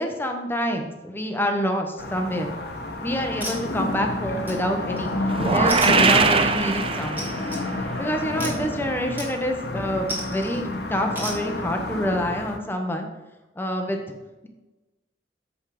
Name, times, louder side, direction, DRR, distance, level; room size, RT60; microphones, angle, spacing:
voice 1, 0.0-2.6 3.0-5.1 5.5-7.3 8.0-13.1 13.6-14.0, equal, 10° left, 3 dB, 0.9 m, -27 dB
sound 1, 2.0-12.6, left 2 dB, 65° left, 1.1 m, -30 dB
sound 2, 2.7-2.9 3.4-4.0 4.5-5.1 5.7-6.5 7.2-7.6 8.4-8.7 9.2-9.6 10.1-10.6 11.2-11.4, equal, 10° right, 1.9 m, -34 dB
sound 3, 5.3-7.5, right 4 dB, 30° right, 0.5 m, -21 dB
7.2 x 5.7 x 4.9 m, 1.1 s
head